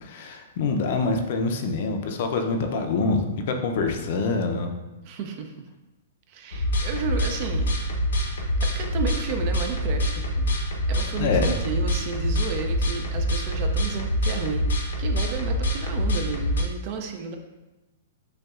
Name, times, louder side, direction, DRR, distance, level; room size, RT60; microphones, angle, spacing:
voice 1, 0.0-4.7 11.2-11.5, left 4 dB, 55° left, 5 dB, 0.5 m, -25 dB
voice 2, 5.0-5.5 6.3-7.7 8.6-10.5 10.9-17.4, right 5 dB, 40° right, 5 dB, 0.4 m, -32 dB
sound 1, 6.5-16.6, equal, 90° left, 0.7 m, -25 dB
6.5 x 2.3 x 2.4 m, 1.1 s
hypercardioid pair, 145°, 0 cm